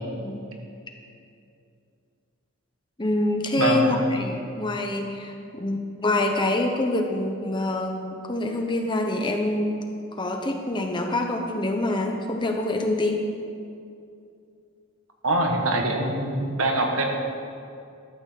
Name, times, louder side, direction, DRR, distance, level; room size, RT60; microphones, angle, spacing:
voice 1, 0.1-0.4 3.0-9.8 10.2-13.2, left 2 dB, 20° left, 3 dB, 0.8 m, -26 dB
voice 2, 3.6-4.1 15.2-17.0, right 2 dB, 80° right, 2 dB, 1.5 m, -24 dB
12.5 x 6.2 x 6.8 m, 2.5 s
head